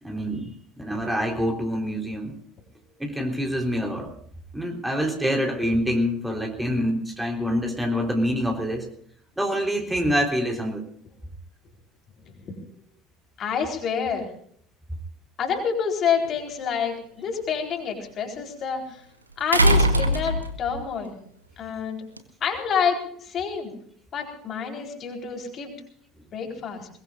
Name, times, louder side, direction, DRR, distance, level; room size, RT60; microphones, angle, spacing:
voice 1, 0.0-2.4 3.0-4.1 4.5-8.9 9.4-10.8, equal, 5° right, 2 dB, 3.7 m, -26 dB
voice 2, 13.4-14.3 15.4-19.0 19.4-21.2 21.6-22.0 22.4-23.7 24.1-25.7 26.3-26.9, left 6 dB, 40° left, 2 dB, 4.2 m, -28 dB
sound 1, 16.2-16.3 19.5-20.8 22.2-22.3, right 1 dB, 85° right, 1.3 m, -20 dB
22.0 x 21.5 x 2.5 m, 0.62 s
figure-of-eight pair, 65°, 0 cm